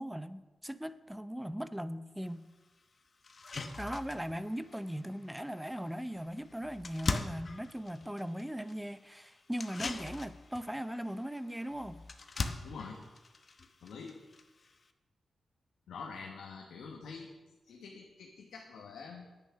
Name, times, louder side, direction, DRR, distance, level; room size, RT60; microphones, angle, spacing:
voice 1, 0.0-2.4 3.8-12.0, equal, 5° right, 13 dB, 0.6 m, -39 dB
sound 1, 2.2-2.3 2.8-2.9 3.2-14.9, left 3 dB, 50° left, 1.0 m, -42 dB
voice 2, 12.6-13.0 13.8-14.1 15.9-17.3 17.6-19.3, left 5 dB, 90° left, 0 dB, 1.2 m, -46 dB
10.0 x 9.1 x 5.9 m, 1.2 s
cardioid pair, 60°, 0 cm